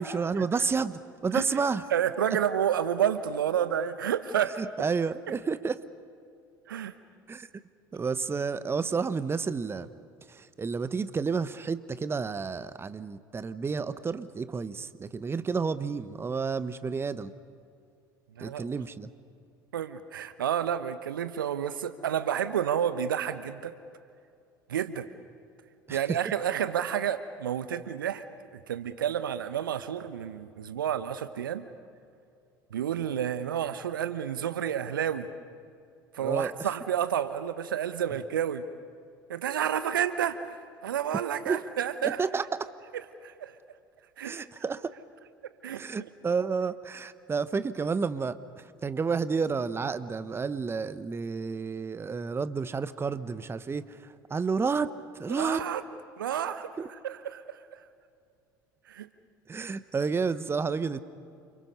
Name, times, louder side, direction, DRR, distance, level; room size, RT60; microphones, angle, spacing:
voice 1, 0.0-1.8 4.6-5.8 7.3-7.5 7.9-9.9 10.3-17.3 18.4-19.1 25.9-26.2 36.2-36.7 41.5-41.6 42.0-42.7 44.2-44.9 45.8-55.6 56.8-56.9 59.5-61.0, right 5 dB, 20° right, 14 dB, 1.0 m, -31 dB
voice 2, 1.9-4.6 6.7-6.9 18.4-18.7 19.7-23.7 24.7-25.1 25.9-28.2 28.5-31.7 32.7-35.3 36.1-38.6 39.3-40.4 40.8-42.2 43.2-43.6 44.2-44.4 45.6-45.8 55.3-55.8 56.2-56.7 57.0-57.8 58.9-59.1, right 9 dB, 75° right, 13 dB, 1.0 m, -30 dB
29.5 x 27.5 x 5.6 m, 2.4 s
figure-of-eight pair, 65°, 11 cm